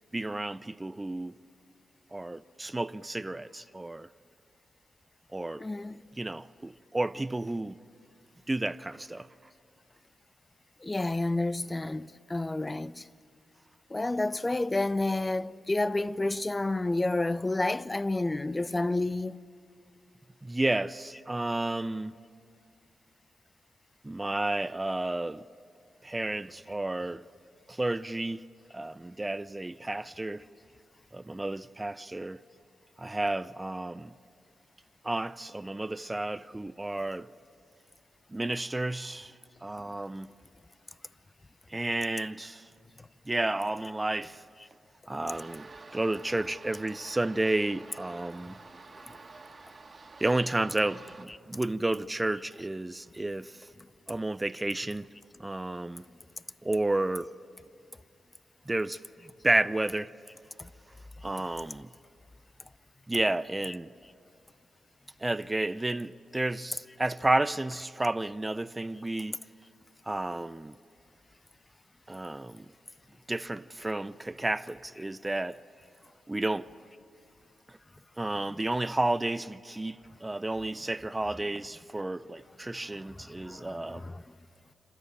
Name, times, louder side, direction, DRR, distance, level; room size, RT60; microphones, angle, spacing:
voice 1, 0.1-1.4 2.1-4.1 5.3-5.6 6.2-7.8 8.5-9.3 20.4-22.1 24.0-25.4 26.0-27.2 27.7-28.4 28.7-30.4 31.1-32.4 33.0-34.1 35.0-37.3 38.3-39.3 39.6-40.3 41.7-42.7 43.3-44.4 45.1-48.6 50.2-53.6 54.1-55.1 55.4-56.0 56.6-57.3 58.7-59.0 59.4-60.1 61.2-61.9 63.1-63.9 65.2-69.3 70.1-70.7 72.1-72.7 73.3-75.6 76.3-76.7 78.2-84.1, right 2 dB, 20° right, 0.5 m, -31 dB
voice 2, 5.6-6.0 10.8-13.1 13.9-19.4 60.6-60.7 63.7-63.8 83.2-84.2, left 2 dB, 25° left, 0.6 m, -30 dB
sound 1, 45.3-51.3, right 3 dB, 45° right, 2.0 m, -49 dB
27.5 x 13.0 x 10.0 m
supercardioid pair, 45°, 0 cm